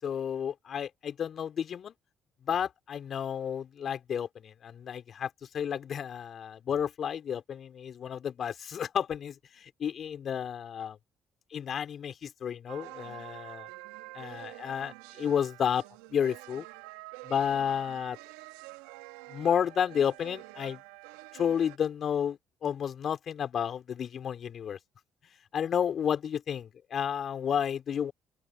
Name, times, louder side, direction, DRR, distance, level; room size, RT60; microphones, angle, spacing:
voice 1, 0.0-1.9 2.4-11.0 11.5-13.7 14.1-15.8 16.1-16.6 17.2-18.2 19.3-20.8 21.3-24.8 25.5-28.1, left 8 dB, 55° left, 4.3 m, -31 dB
sound 1, 12.7-21.8, right 22 dB, 85° right, 2.0 m, -47 dB
open air
hypercardioid pair, 55°, 0 cm